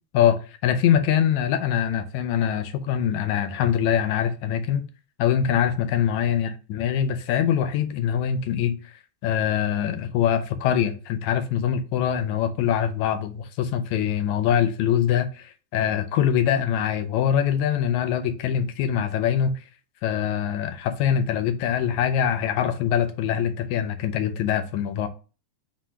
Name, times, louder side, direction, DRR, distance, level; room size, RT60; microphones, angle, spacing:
voice 1, 0.1-4.8 5.2-8.8 9.2-19.6 20.0-25.1, left 9 dB, 80° left, 1.8 m, -23 dB
5.0 x 2.2 x 4.3 m
omnidirectional pair, 3.3 m